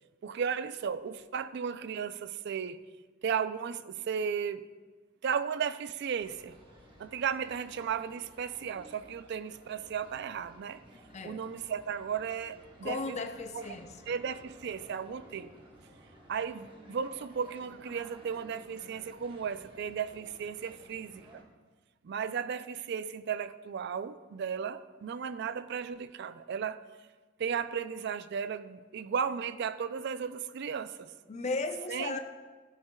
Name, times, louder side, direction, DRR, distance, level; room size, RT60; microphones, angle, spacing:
voice 1, 0.2-2.8 3.2-4.7 5.2-6.6 7.0-10.8 11.2-13.2 13.5-13.6 14.1-15.5 16.3-21.4 22.0-26.8 27.4-31.1 31.9-32.2, right 7 dB, 55° right, 14 dB, 0.3 m, -35 dB
sound 1, 6.1-21.4, right 1 dB, 25° right, 1.1 m, -55 dB
voice 2, 11.1-11.4 12.8-14.0 31.3-32.2, left 3 dB, 35° left, 7 dB, 0.6 m, -35 dB
12.5 x 9.1 x 2.3 m, 1.3 s
head